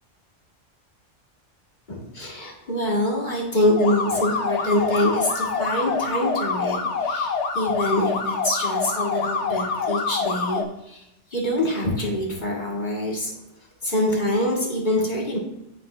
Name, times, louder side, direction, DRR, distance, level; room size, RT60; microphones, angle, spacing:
voice 1, 1.9-11.0 11.3-13.3 13.8-15.4, left 1 dB, 40° left, -3 dB, 1.9 m, -25 dB
sound 1, 3.8-10.6, left 4 dB, 70° left, 1.0 m, -26 dB
10.5 x 3.8 x 3.2 m, 0.86 s
omnidirectional pair, 1.2 m